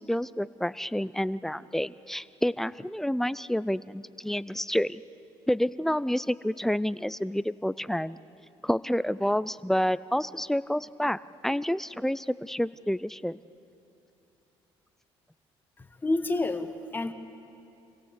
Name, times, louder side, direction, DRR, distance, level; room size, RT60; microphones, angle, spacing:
voice 1, 0.0-5.0 5.5-8.2 8.6-13.4, equal, 5° left, 17 dB, 0.4 m, -29 dB
voice 2, 15.8-17.1, left 2 dB, 20° left, 8 dB, 1.5 m, -29 dB
26.5 x 17.0 x 8.2 m, 2.8 s
cardioid pair, 105°, 10 cm